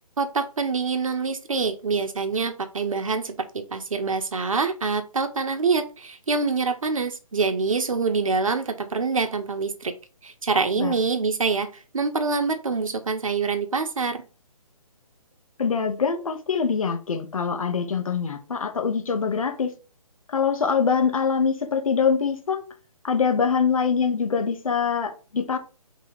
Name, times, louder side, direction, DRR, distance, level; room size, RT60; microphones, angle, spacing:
voice 1, 0.2-9.9 10.2-14.2, right 4 dB, 60° right, 0.7 m, -25 dB
voice 2, 15.6-19.7 20.3-22.6 23.0-25.6, left 6 dB, 60° left, 0.9 m, -24 dB
3.9 x 2.7 x 4.7 m
figure-of-eight pair, 140°, 19 cm